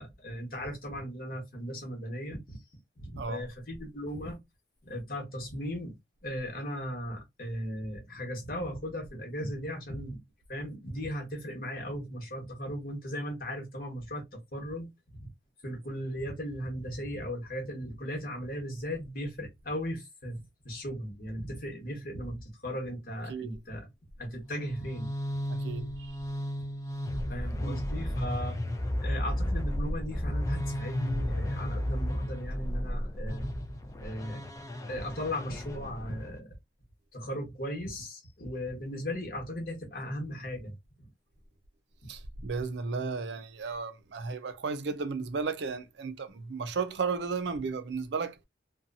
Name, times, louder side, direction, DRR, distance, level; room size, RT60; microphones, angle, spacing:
voice 1, 0.0-2.6 3.0-4.4 4.8-6.0 6.2-10.2 10.5-15.3 15.6-23.9 24.2-25.1 27.3-28.6 29.0-33.5 34.0-34.4 34.9-36.5 37.1-41.1, equal, 50° left, 1.1 m, -37 dB
sound 1, 24.5-36.4, equal, 20° left, 0.4 m, -33 dB
voice 2, 25.5-26.1 27.6-27.8 42.1-48.4, right 4 dB, 75° right, 0.5 m, -34 dB
2.7 x 2.2 x 2.5 m
head